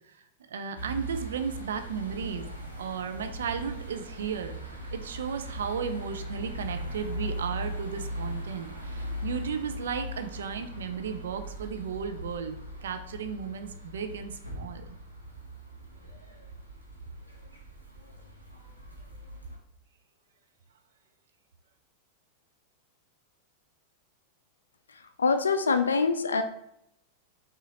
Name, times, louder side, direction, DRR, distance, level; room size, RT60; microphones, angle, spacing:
voice 1, 0.5-2.5 2.8-4.5 4.9-12.6 12.8-14.8, right 6 dB, 65° right, 8 dB, 0.4 m, -34 dB
sound 1, 0.7-19.6, equal, 90° right, 0.8 m, -39 dB
voice 2, 25.2-26.4, left 4 dB, 70° left, 9 dB, 0.3 m, -24 dB
5.5 x 2.4 x 2.9 m, 0.76 s
figure-of-eight pair, 90°, 0 cm